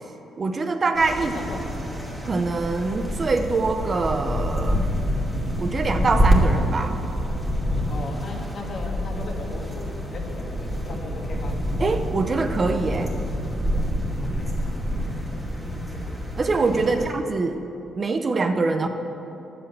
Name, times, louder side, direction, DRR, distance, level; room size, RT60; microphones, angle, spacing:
voice 1, 0.4-1.4 2.3-4.9 5.6-7.0 11.8-13.1 16.4-17.6 18.0-18.9, right 3 dB, 35° right, 7 dB, 0.8 m, -24 dB
sound 1, 0.9-17.1, equal, 10° right, 2.7 m, -27 dB
voice 2, 1.2-2.1 7.9-11.6 14.2-15.1 15.6-15.8 16.7-17.1 18.8-18.9, left 3 dB, 50° left, 1 dB, 2.0 m, -38 dB
11.0 x 7.6 x 7.8 m, 3.0 s
cardioid pair, 90°, 0 cm